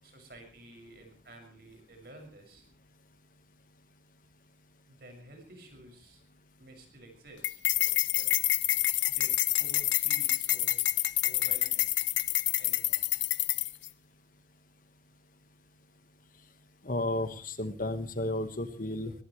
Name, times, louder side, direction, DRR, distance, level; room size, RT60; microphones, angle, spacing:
voice 1, 0.0-2.7 4.9-6.2 6.6-8.3 9.1-10.9 11.2-11.9 12.6-13.1, right 1 dB, 55° right, 4 dB, 6.5 m, -52 dB
sound 1, 7.4-13.9, left 16 dB, 80° left, 0.8 m, -28 dB
voice 2, 16.8-19.1, left 1 dB, 45° left, 9 dB, 1.5 m, -33 dB
22.0 x 20.0 x 3.2 m, 0.37 s
head